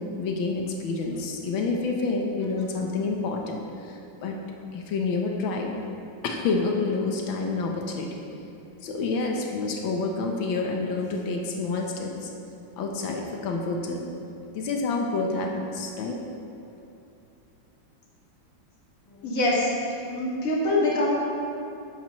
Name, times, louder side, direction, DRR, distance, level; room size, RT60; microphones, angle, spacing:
voice 1, 0.0-4.4 4.7-5.8 6.2-8.1 8.8-12.3 12.8-14.0 14.5-16.2, left 3 dB, 80° left, 1 dB, 1.8 m, -28 dB
voice 2, 19.2-19.7 20.1-21.1, left 2 dB, 45° left, -5 dB, 2.2 m, -24 dB
13.0 x 9.8 x 3.1 m, 2.7 s
omnidirectional pair, 2.1 m